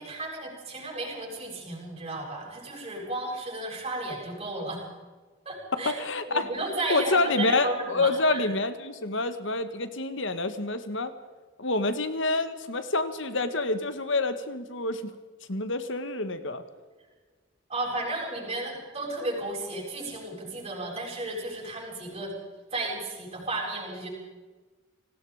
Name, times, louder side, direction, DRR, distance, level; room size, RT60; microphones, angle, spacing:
voice 1, 0.0-4.9 5.4-6.0 6.3-8.4 17.7-22.3 22.7-24.1, right 2 dB, 30° right, -4 dB, 7.7 m, -34 dB
voice 2, 5.8-6.5 6.9-11.1 11.6-15.1 15.5-16.6, left 2 dB, 65° left, 10 dB, 1.8 m, -27 dB
29.5 x 19.0 x 5.1 m, 1.3 s
head